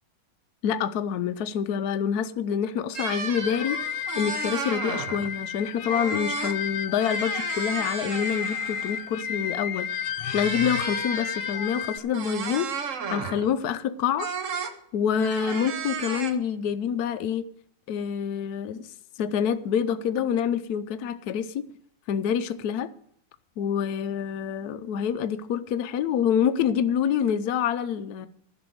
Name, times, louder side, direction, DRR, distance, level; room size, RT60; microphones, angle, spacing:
voice 1, 0.6-12.7 13.1-14.3 14.9-17.4 17.9-18.9 19.2-21.6 22.1-22.9 23.6-28.3, left 8 dB, 65° left, 0.9 m, -27 dB
sound 1, 2.9-5.3 5.9-6.6 6.9-9.1 10.2-13.5 14.2-14.7 15.1-16.3, right 6 dB, 50° right, 1.1 m, -34 dB
sound 2, 3.3-12.0, left 9 dB, 90° left, 1.6 m, -32 dB
11.5 x 6.2 x 9.1 m
omnidirectional pair, 2.3 m